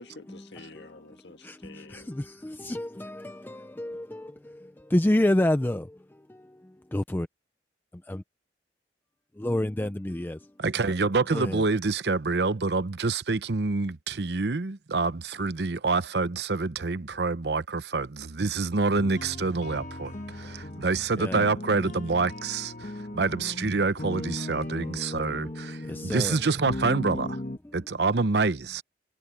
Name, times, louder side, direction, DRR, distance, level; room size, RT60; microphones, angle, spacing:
voice 1, 0.0-2.1, left 3 dB, 80° left, 1.6 m, -48 dB
voice 2, 2.7-3.1 3.8-4.0 4.9-5.8 6.9-7.3 9.4-10.3 11.3-11.6 21.2-21.4 26.1-26.4, left 1 dB, 10° left, 0.4 m, -25 dB
voice 3, 10.6-27.4 27.7-28.8, right 3 dB, 70° right, 0.8 m, -27 dB
sound 1, 18.9-27.6, left 1 dB, 45° left, 1.6 m, -37 dB
head